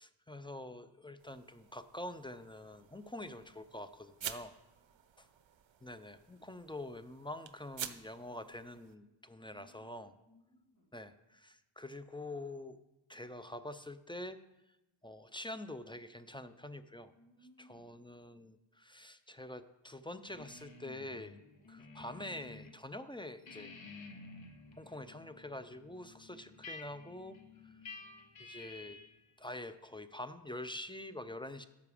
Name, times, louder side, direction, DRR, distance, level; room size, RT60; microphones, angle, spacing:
voice 1, 0.0-4.5 5.2-5.3 5.8-10.1 10.9-12.8 13.1-14.4 15.0-17.1 17.7-21.4 21.7-23.7 24.8-27.4 28.4-29.0 29.4-31.6, left 1 dB, 10° left, 11 dB, 0.4 m, -46 dB
sound 1, 1.2-9.0, right 9 dB, 65° right, 0.7 m, -50 dB
voice 2, 4.7-5.3 8.3-8.6 9.5-10.9 17.1-17.9 21.5-22.0 24.6-25.0 26.3-26.6 27.6-28.1, equal, 40° left, -4 dB, 3.3 m, -66 dB
sound 2, 20.3-22.8 23.1-29.2, left 3 dB, 65° left, 1.1 m, -52 dB
12.5 x 5.8 x 5.0 m, 0.98 s
wide cardioid pair, 75°, 50 cm